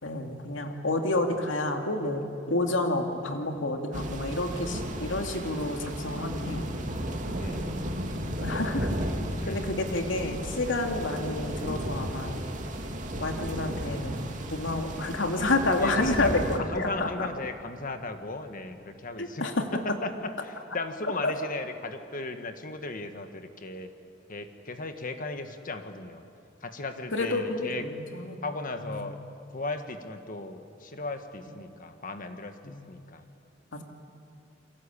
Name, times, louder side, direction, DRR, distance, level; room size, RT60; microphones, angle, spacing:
voice 1, 0.0-2.2 2.5-6.7 8.4-8.9 9.5-12.4 13.2-17.3 19.2-19.8 21.2-21.3 27.1-28.4 28.8-29.1 32.6-32.9 33.7-33.8, left 2 dB, 85° left, 4 dB, 2.7 m, -29 dB
sound 1, 3.9-16.6, right 1 dB, 40° right, 2.6 m, -34 dB
voice 2, 7.3-7.8 9.4-9.8 15.8-16.3 16.6-23.9 24.3-26.2 26.6-27.9 28.4-29.2 29.5-32.5 32.9-33.2, left 2 dB, 45° left, 7 dB, 1.5 m, -36 dB
sound 2, 7.3-18.8 19.1-19.2, left 2 dB, 80° right, 4.1 m, -42 dB
29.0 x 23.0 x 8.6 m, 2.5 s
head